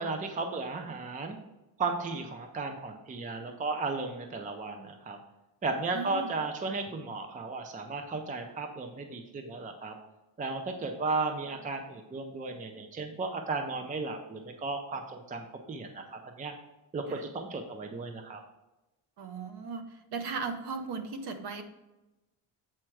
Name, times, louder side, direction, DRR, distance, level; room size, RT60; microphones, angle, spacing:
voice 1, 0.0-1.4 1.8-5.2 5.6-9.9 10.4-16.5 16.9-18.4, right 3 dB, 20° right, 5 dB, 0.5 m, -35 dB
voice 2, 5.9-6.3 17.1-17.2 19.2-19.8 20.1-21.6, right 4 dB, 60° right, 8 dB, 1.0 m, -36 dB
7.6 x 4.5 x 4.6 m, 1.0 s
cardioid pair, 170°, 45 cm